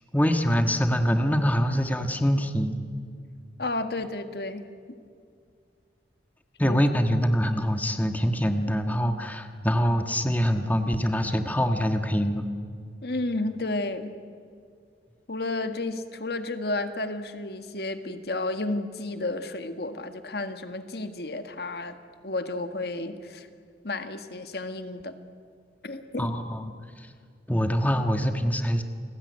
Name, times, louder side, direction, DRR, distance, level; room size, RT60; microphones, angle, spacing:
voice 1, 0.1-2.8 6.6-12.5 26.2-26.7 27.0-27.1 27.5-28.8, equal, 10° left, 6 dB, 1.5 m, -24 dB
voice 2, 3.6-4.7 6.6-6.8 13.0-14.1 15.3-22.0 22.2-23.5 23.8-25.1 25.8-26.3, left 2 dB, 65° left, 8 dB, 1.8 m, -32 dB
29.0 x 20.5 x 9.7 m, 2.2 s
head